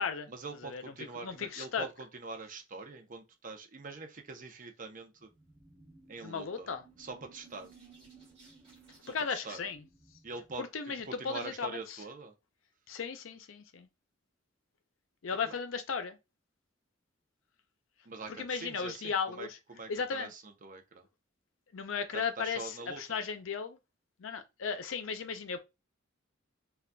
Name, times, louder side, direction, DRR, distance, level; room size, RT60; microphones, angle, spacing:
voice 1, 0.3-5.3 6.1-6.7 7.0-7.7 9.0-9.6 10.2-10.6 11.1-12.3 15.4-15.5 18.0-21.1 22.1-23.0, right 3 dB, 45° right, 0.6 m, -44 dB
voice 2, 1.2-1.9 6.2-6.8 9.1-9.8 10.6-11.7 12.9-13.9 15.2-16.2 18.4-19.6 19.9-20.3 21.7-23.8 24.2-25.6, left 6 dB, 75° left, 0.5 m, -35 dB
sound 1, 5.2-10.6, right 4 dB, 25° right, 1.2 m, -59 dB
3.9 x 2.3 x 2.2 m
head